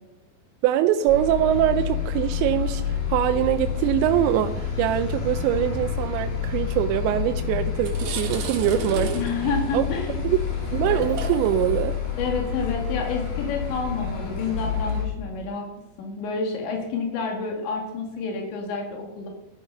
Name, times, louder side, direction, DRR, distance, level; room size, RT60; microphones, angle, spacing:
voice 1, 0.6-9.1 9.7-9.9 10.2-10.4 10.7-12.0, right 12 dB, 85° right, 8 dB, 2.9 m, -23 dB
sound 1, 1.1-15.0, left 7 dB, 55° left, 4.0 m, -29 dB
sound 2, 7.2-7.3 7.7-15.0, right 4 dB, 60° right, 2.7 m, -36 dB
voice 2, 9.1-10.2 12.2-15.6 16.0-19.3, left 4 dB, 80° left, 2 dB, 4.2 m, -29 dB
13.5 x 11.0 x 5.4 m, 0.94 s
omnidirectional pair, 5.1 m